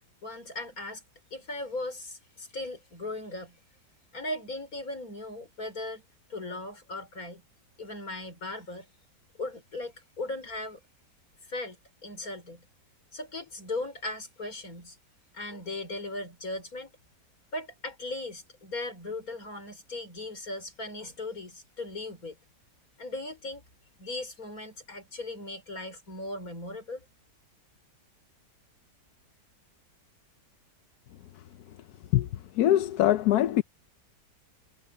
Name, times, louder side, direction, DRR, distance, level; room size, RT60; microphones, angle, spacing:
voice 1, 0.2-1.0 1.3-3.6 4.1-6.0 6.3-7.4 7.8-8.9 9.4-10.8 11.5-11.8 12.0-12.7 13.1-15.0 15.3-17.0 17.5-22.4 23.0-23.6 24.0-27.0, left 2 dB, 55° left, 5.4 m, -38 dB
voice 2, 32.1-33.6, left 13 dB, 70° left, 1.1 m, -23 dB
omnidirectional pair, 1.8 m